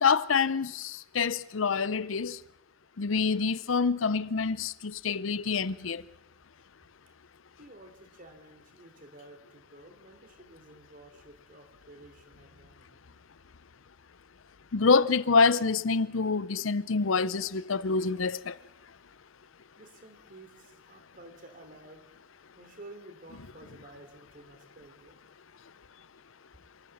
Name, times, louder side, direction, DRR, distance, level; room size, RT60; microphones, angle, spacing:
voice 1, 0.0-2.4 3.0-6.0 14.7-18.6, left 4 dB, 85° left, 0.7 m, -26 dB
voice 2, 7.6-13.4 19.8-22.0 22.6-25.2, right 2 dB, 45° right, 3.3 m, -52 dB
28.0 x 14.5 x 7.3 m
head